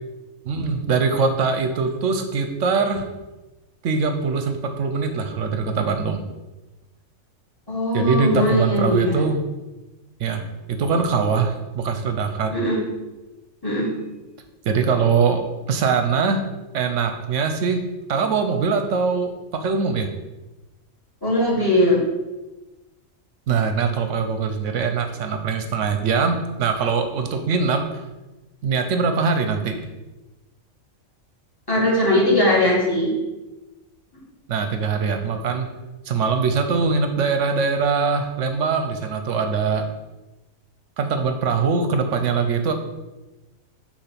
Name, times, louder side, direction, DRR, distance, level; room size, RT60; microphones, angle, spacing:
voice 1, 0.5-3.1 3.8-6.2 7.9-9.4 10.2-10.4 10.7-12.6 14.6-16.4 16.7-17.8 18.1-20.1 23.5-27.8 28.6-29.8 34.5-35.7 36.1-39.8 41.0-42.7, right 5 dB, 65° right, 7 dB, 0.9 m, -22 dB
voice 2, 7.7-9.1 12.5-12.8 13.6-13.9 21.2-22.0 31.7-33.1, left 1 dB, 15° left, -5 dB, 1.8 m, -19 dB
6.7 x 2.9 x 5.8 m, 1.1 s
omnidirectional pair, 1.4 m